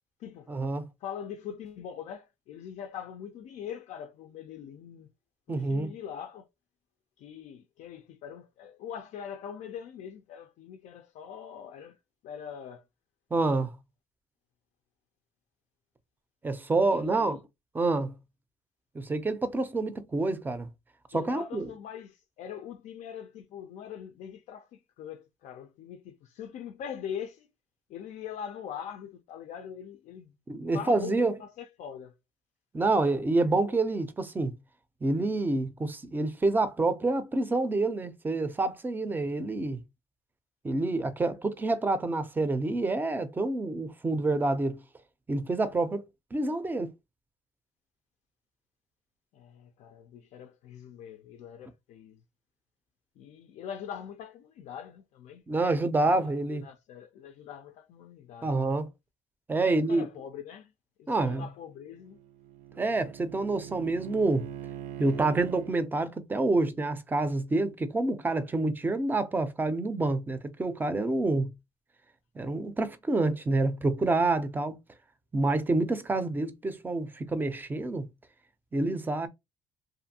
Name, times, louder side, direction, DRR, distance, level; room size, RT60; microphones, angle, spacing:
voice 1, 0.5-0.8 5.5-5.9 13.3-13.7 16.4-17.4 17.7-18.1 18.9-20.7 21.1-21.7 30.5-31.4 32.7-34.5 35.0-39.8 40.6-44.8 45.3-46.0 46.3-46.9 55.5-56.7 58.4-58.9 59.5-60.1 61.1-61.5 62.8-64.5 65.0-71.5 72.4-74.8 75.3-78.1 78.7-79.3, right 2 dB, 15° right, 0.4 m, -27 dB
voice 2, 1.0-5.1 5.5-6.5 7.2-12.0 12.2-12.8 16.9-17.4 21.1-27.5 27.9-30.4 30.7-32.1 49.3-52.2 53.2-55.4 56.0-58.6 59.6-60.7 61.0-62.2, left 8 dB, 70° left, 0.4 m, -42 dB
Bowed string instrument, 61.7-65.8, right 12 dB, 85° right, 0.4 m, -43 dB
2.5 x 2.5 x 2.7 m
cardioid pair, 110°, 13 cm